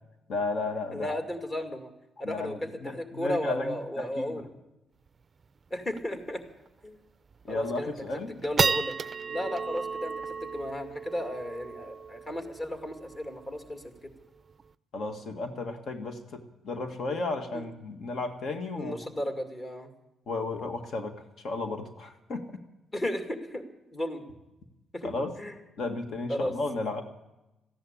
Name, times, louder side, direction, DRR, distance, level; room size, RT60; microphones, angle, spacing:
voice 1, 0.3-1.2 2.2-4.5 7.4-8.3 14.9-19.0 20.3-22.5 25.0-25.3 25.8-27.0, left 3 dB, 60° left, 6 dB, 1.8 m, -34 dB
voice 2, 0.9-1.9 2.2-4.5 5.7-6.4 6.8-7.0 7.5-7.9 8.3-9.0 9.3-13.8 17.5-17.6 18.7-19.9 22.9-23.6 23.9-24.2 24.9-25.1 25.4-25.5 26.3-26.5, left 1 dB, 25° left, 5 dB, 2.3 m, -34 dB
sound 1, 5.1-5.2 5.4-5.5 5.9-6.2 6.7-6.8 7.3-7.7 8.1-14.7, right 5 dB, 35° right, 0.4 m, -34 dB
14.5 x 11.0 x 8.5 m, 0.97 s
cardioid pair, 90°, 0 cm